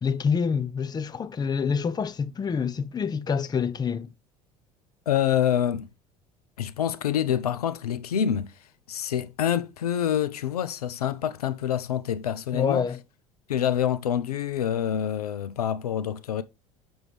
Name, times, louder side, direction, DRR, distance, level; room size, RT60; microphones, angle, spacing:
voice 1, 0.0-4.1 12.5-13.0, left 6 dB, 20° left, 0.5 m, -27 dB
voice 2, 5.1-5.9 6.6-8.5 8.9-12.9 13.5-16.4, left 9 dB, 85° left, 0.5 m, -26 dB
6.3 x 6.1 x 3.2 m
hypercardioid pair, 70°, 19 cm